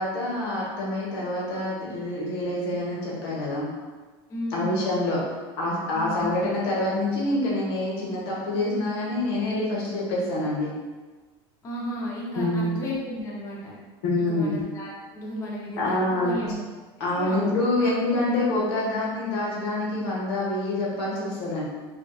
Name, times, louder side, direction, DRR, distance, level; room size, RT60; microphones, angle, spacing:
voice 1, 0.0-3.7 4.5-5.2 5.6-10.7 12.4-12.7 14.0-14.6 15.8-16.4 17.0-21.6, left 1 dB, 85° left, -4 dB, 0.9 m, -26 dB
voice 2, 4.3-5.1 5.9-6.5 11.6-13.8 14.2-16.6 17.2-17.5 17.8-17.9 18.3-18.4, equal, 25° left, -4 dB, 0.5 m, -34 dB
2.6 x 2.2 x 2.2 m, 1.3 s
supercardioid pair, 135°, 13 cm